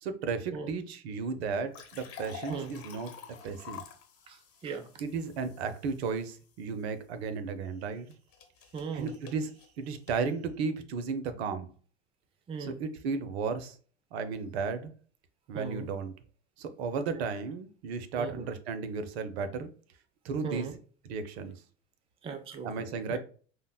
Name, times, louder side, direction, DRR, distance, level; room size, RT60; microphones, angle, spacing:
voice 1, 0.0-3.1 3.4-3.8 5.0-8.1 8.9-11.7 12.6-13.8 14.1-14.9 15.5-16.1 16.6-19.7 20.2-20.7 21.1-21.5 22.6-23.2, right 5 dB, 65° right, 0.6 m, -34 dB
sound 1, 1.5-6.6 8.1-10.2, left 8 dB, 40° left, 1.0 m, -48 dB
voice 2, 4.3-4.9 8.7-9.1 12.5-12.8 15.5-15.9 17.1-17.2 18.2-18.4 20.4-20.8 22.2-23.2, right 5 dB, 15° right, 0.4 m, -38 dB
5.1 x 2.1 x 2.2 m
figure-of-eight pair, 80°, 35 cm